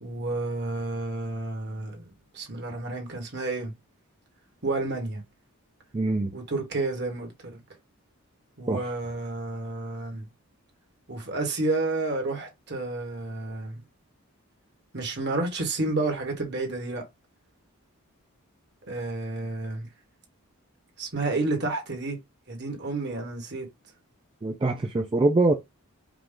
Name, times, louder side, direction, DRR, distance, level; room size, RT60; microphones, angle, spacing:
voice 1, 0.0-2.0 2.3-3.7 4.6-5.2 6.3-7.6 8.6-10.3 11.1-13.8 14.9-17.0 18.9-19.9 21.0-22.2 22.5-23.7, right 2 dB, 50° right, 1.5 m, -30 dB
voice 2, 5.9-6.3 8.7-8.9 24.4-25.5, right 2 dB, 20° right, 0.3 m, -23 dB
5.0 x 2.3 x 3.7 m
head